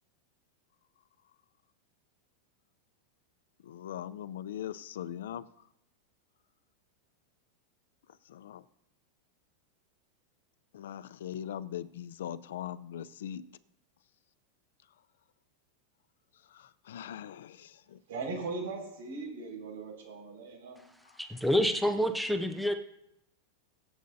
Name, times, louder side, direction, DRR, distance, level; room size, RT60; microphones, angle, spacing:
voice 1, 3.6-5.5 8.3-8.6 10.7-13.4 16.5-18.0, left 10 dB, 90° left, 16 dB, 0.5 m, -40 dB
voice 2, 18.1-20.8, right 3 dB, 85° right, 1 dB, 5.3 m, -39 dB
voice 3, 21.2-22.8, equal, ahead, 5 dB, 0.5 m, -27 dB
22.5 x 8.0 x 2.7 m, 0.81 s
supercardioid pair, 170°, 0 cm